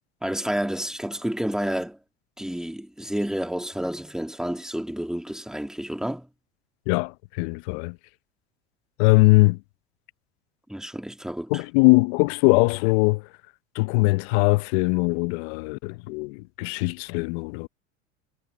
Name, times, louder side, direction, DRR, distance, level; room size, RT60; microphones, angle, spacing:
voice 1, 0.2-2.0 2.4-6.3 10.7-11.6, equal, ahead, 2.1 m, -30 dB
voice 2, 6.9-8.0 9.0-9.6 11.5-13.3 13.7-17.7, left 26 dB, 65° left, 0.7 m, -21 dB
hypercardioid pair, 100°, 36 cm